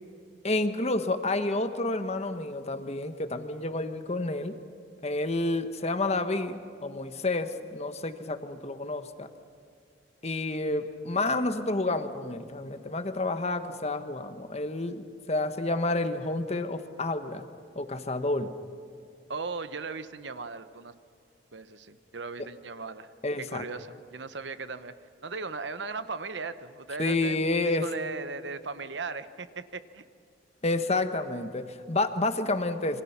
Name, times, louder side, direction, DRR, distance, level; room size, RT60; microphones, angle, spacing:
voice 1, 0.4-4.6 5.0-9.3 10.2-17.4 17.7-18.6 23.2-23.6 27.0-27.9 30.6-33.0, left 2 dB, 35° left, 8 dB, 1.3 m, -29 dB
voice 2, 19.3-20.9 21.5-23.1 23.4-24.9 25.2-30.0, right 4 dB, 70° right, 12 dB, 1.0 m, -37 dB
28.0 x 24.5 x 5.9 m, 2.4 s
head